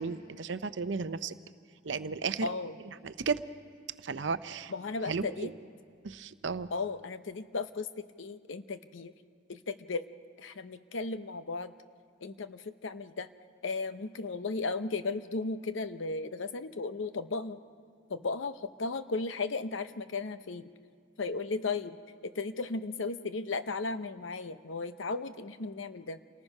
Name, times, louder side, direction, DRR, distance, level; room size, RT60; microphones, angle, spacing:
voice 1, 0.0-1.3 1.8-2.5 3.0-3.4 4.0-4.7 5.0-5.5 6.0-6.7, right 4 dB, 65° right, 13 dB, 0.7 m, -34 dB
voice 2, 2.4-2.8 4.7-5.5 6.7-7.9 8.2-9.1 9.5-10.0 10.4-11.7 12.2-13.3 13.6-17.6 18.1-20.7 21.2-22.0 22.2-26.2, left 3 dB, 75° left, 11 dB, 0.7 m, -35 dB
28.5 x 19.0 x 5.4 m, 2.3 s
head